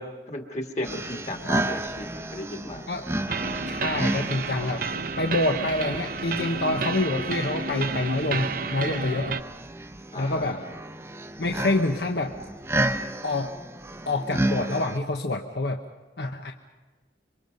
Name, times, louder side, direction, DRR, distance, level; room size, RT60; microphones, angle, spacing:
voice 1, 0.0-2.8 10.1-10.7, left 1 dB, 40° left, 3 dB, 2.0 m, -35 dB
sound 1, 0.8-15.0, right 1 dB, 15° right, 0.7 m, -32 dB
sound 2, 3.3-9.4, right 4 dB, 50° right, 0.7 m, -31 dB
voice 2, 3.7-4.9 5.2-9.4 10.2-10.6 11.4-12.4 13.2-13.5 14.1-15.8 16.2-16.5, left 2 dB, 70° left, 4 dB, 1.1 m, -27 dB
26.5 x 24.5 x 5.4 m, 1.3 s
head